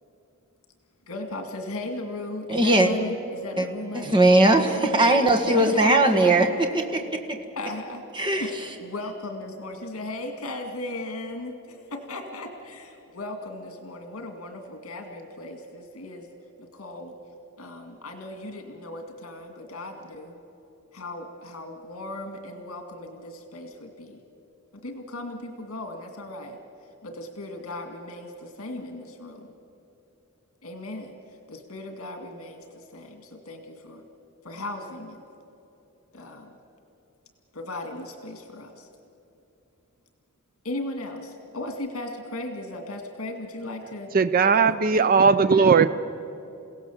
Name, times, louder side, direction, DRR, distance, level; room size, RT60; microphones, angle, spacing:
voice 1, 1.1-4.2 5.5-6.4 7.6-8.0 8.3-16.3 16.6-17.2 17.6-20.3 20.9-24.2 24.7-26.6 27.0-29.5 30.6-31.1 31.5-34.0 34.4-35.2 36.1-36.5 37.5-38.9 40.6-44.1 44.4-45.1, left 2 dB, 75° left, 4 dB, 2.1 m, -37 dB
voice 2, 2.5-2.9 3.6-3.7 3.9-6.5 6.9-7.0 7.3-7.4 8.1-8.4, right 2 dB, 20° right, 2 dB, 1.8 m, -19 dB
voice 3, 44.1-45.9, right 5 dB, 40° right, 12 dB, 0.5 m, -18 dB
29.5 x 17.0 x 7.3 m, 2.9 s
head